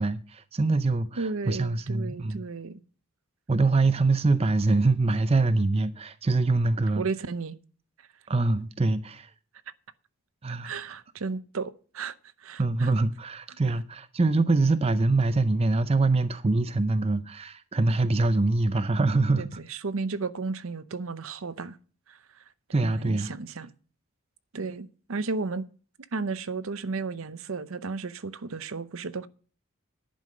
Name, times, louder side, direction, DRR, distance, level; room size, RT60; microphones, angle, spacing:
voice 1, 0.0-2.4 3.5-7.0 8.3-9.3 10.4-10.8 12.6-19.6 22.7-23.3, right 3 dB, 25° right, 0.5 m, -24 dB
voice 2, 1.2-2.8 6.9-7.6 10.6-12.1 12.4-12.9 19.4-21.8 22.1-22.2 22.8-23.7 24.5-25.7 26.1-29.3, right 4 dB, 65° right, 0.7 m, -33 dB
11.0 x 5.6 x 7.5 m
head